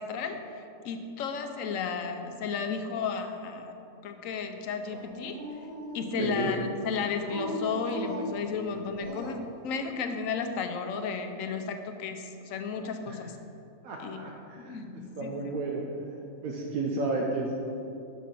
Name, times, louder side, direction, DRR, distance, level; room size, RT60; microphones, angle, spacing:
voice 1, 0.0-3.8 4.0-5.4 5.9-13.4 14.0-14.2 14.6-15.5, left 5 dB, 75° left, 6 dB, 1.0 m, -33 dB
Dog, 4.9-6.4 7.2-9.6, equal, 40° right, 0.7 m, -39 dB
voice 2, 6.2-6.5 13.0-13.2 13.8-17.5, right 2 dB, 85° right, -1 dB, 1.2 m, -33 dB
6.0 x 6.0 x 5.7 m, 2.7 s
omnidirectional pair, 1.4 m